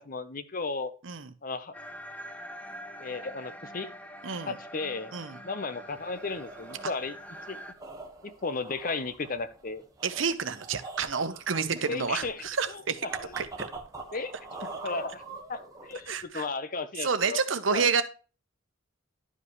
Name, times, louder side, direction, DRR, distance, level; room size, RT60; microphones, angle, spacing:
voice 1, 0.0-0.9 1.4-1.7 3.0-3.9 4.5-5.1 5.4-7.1 7.5-7.6 8.2-9.8 11.9-13.3 14.1-14.3 14.8-15.2 15.5-17.4 17.7-17.9, left 3 dB, 45° left, 11 dB, 0.9 m, -34 dB
sound 1, 1.7-7.7, equal, 5° left, 0.7 m, -44 dB
voice 2, 4.2-4.5 5.1-5.4 10.0-13.1 13.4-13.5 16.1-16.4 17.0-18.0, right 5 dB, 80° right, 11 dB, 0.9 m, -29 dB
sound 2, 5.9-16.2, right 3 dB, 20° right, 1.5 m, -44 dB
11.0 x 5.5 x 3.1 m, 0.35 s
head